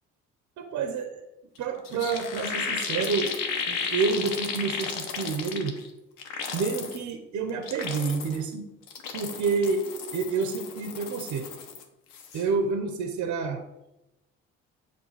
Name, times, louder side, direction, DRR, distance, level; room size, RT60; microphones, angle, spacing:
voice 1, 0.6-1.2 1.6-3.4 3.7-5.8 6.5-8.7 9.1-9.8 10.1-11.5 12.3-13.6, right 4 dB, 60° right, 6 dB, 0.8 m, -28 dB
sound 1, 1.6-1.7 1.8-5.9 6.2-7.0 7.5-8.4 8.8-11.8 12.1-12.5, left 6 dB, 85° left, 0.9 m, -34 dB
7.0 x 2.6 x 5.7 m, 0.93 s
supercardioid pair, 70°, 33 cm